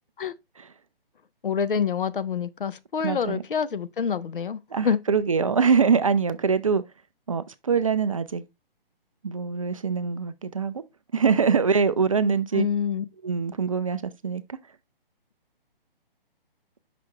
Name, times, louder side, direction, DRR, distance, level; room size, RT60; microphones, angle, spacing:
voice 1, 1.4-5.0 12.5-13.0, left 7 dB, 65° left, 0.6 m, -27 dB
voice 2, 3.0-3.4 4.7-6.8 7.3-8.4 9.2-10.8 11.1-12.7 13.2-14.4, right 5 dB, 35° right, 0.4 m, -23 dB
5.8 x 5.1 x 3.2 m
figure-of-eight pair, 135°, 29 cm